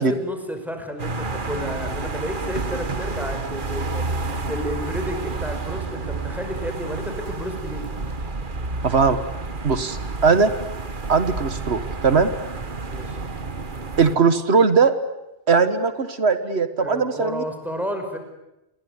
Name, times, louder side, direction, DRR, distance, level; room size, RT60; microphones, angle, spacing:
voice 1, 0.0-4.1 4.5-7.9 12.9-13.2 16.8-18.2, equal, ahead, 5 dB, 5.6 m, -31 dB
sound 1, 1.0-14.1, right 3 dB, 50° right, 1.7 m, -30 dB
voice 2, 8.8-9.2 9.6-10.5 11.1-12.3 14.0-14.9 15.5-17.4, right 5 dB, 90° right, 11 dB, 1.8 m, -19 dB
28.5 x 21.5 x 9.7 m, 0.93 s
omnidirectional pair, 1.1 m